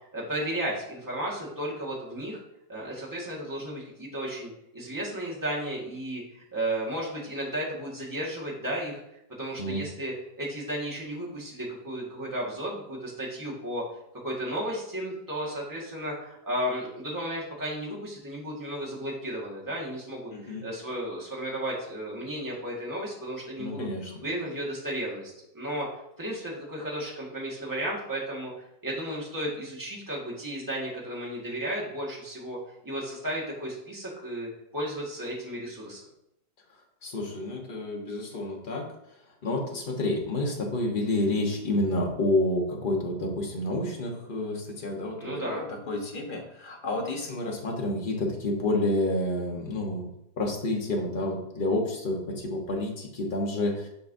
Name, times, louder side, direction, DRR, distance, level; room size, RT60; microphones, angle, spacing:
voice 1, 0.1-2.4 2.7-9.0 9.4-13.8 14.2-23.9 24.2-25.9 26.2-28.5 28.8-32.6 32.8-36.0 45.2-45.7, right 1 dB, 10° right, -5 dB, 1.5 m, -34 dB
voice 2, 20.3-20.6 23.6-24.2 37.0-38.9 39.4-50.1 50.4-53.9, left 1 dB, 35° left, 1 dB, 0.9 m, -29 dB
6.8 x 5.4 x 2.6 m, 0.80 s
omnidirectional pair, 2.0 m